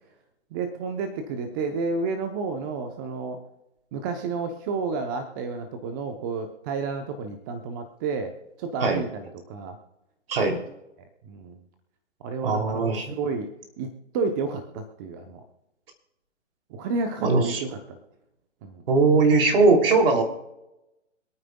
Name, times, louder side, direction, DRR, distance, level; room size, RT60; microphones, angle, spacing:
voice 1, 0.5-3.4 3.9-8.3 8.6-9.8 10.3-10.4 11.2-11.6 12.2-12.8 13.1-13.5 13.8-15.4 16.7-18.0 18.6-18.9, right 4 dB, 15° right, 6 dB, 0.7 m, -31 dB
voice 2, 10.3-10.6 12.4-13.1 17.2-17.6 18.9-20.2, right 3 dB, 50° right, 3 dB, 3.0 m, -20 dB
26.5 x 9.3 x 2.3 m, 0.90 s
hypercardioid pair, 145°, 37 cm